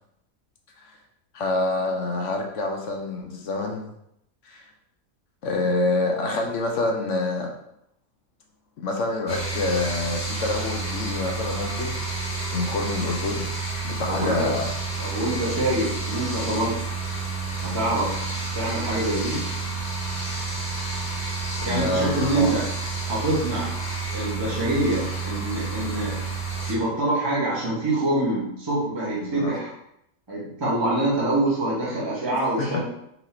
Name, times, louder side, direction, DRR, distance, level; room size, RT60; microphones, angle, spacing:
voice 1, 1.3-3.9 4.4-4.7 5.4-7.5 8.8-12.0 12.4-13.5 13.8-14.7 21.6-22.5 29.2-29.5 32.6-32.8, left 2 dB, 65° left, 2 dB, 1.0 m, -27 dB
sound 1, 9.3-26.7, right 4 dB, 35° left, 1.0 m, -30 dB
voice 2, 14.1-14.5 15.0-16.8 17.6-18.2 18.5-19.4 21.6-22.6 23.1-23.7 24.1-26.2 26.7-29.7 30.3-32.8, right 1 dB, 20° right, -8 dB, 1.1 m, -25 dB
4.1 x 2.9 x 4.3 m, 0.77 s
omnidirectional pair, 1.4 m